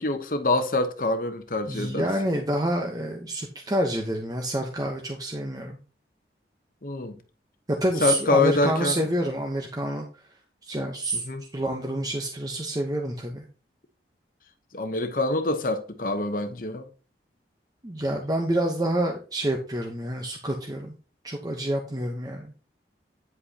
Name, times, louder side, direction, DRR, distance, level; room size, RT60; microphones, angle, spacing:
voice 1, 0.0-2.1 6.8-7.2 8.0-9.0 11.3-11.4 14.7-16.9, left 2 dB, 50° left, 0.9 m, -25 dB
voice 2, 1.7-5.8 7.7-10.1 10.6-11.3 11.5-13.4 17.8-20.9 21.2-22.5, right 1 dB, 20° right, 0.9 m, -28 dB
9.8 x 7.6 x 2.9 m
head